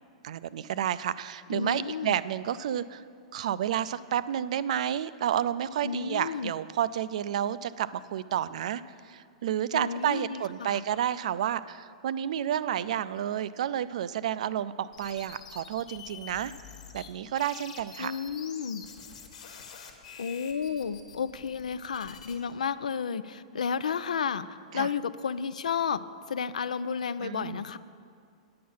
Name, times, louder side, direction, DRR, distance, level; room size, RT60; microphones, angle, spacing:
voice 1, 0.2-3.0 3.3-8.8 9.1-16.5 16.9-18.1 24.7-24.9 27.2-27.6, right 10 dB, 70° right, 16 dB, 0.3 m, -30 dB
voice 2, 1.5-2.2 5.8-6.5 9.7-10.8 18.0-18.8 20.2-27.8, left 6 dB, 90° left, 15 dB, 0.4 m, -32 dB
sound 1, 14.9-17.1 17.4-22.3, left 7 dB, 70° left, 1.3 m, -47 dB
8.7 x 8.4 x 5.5 m, 2.3 s
hypercardioid pair, 125°, 4 cm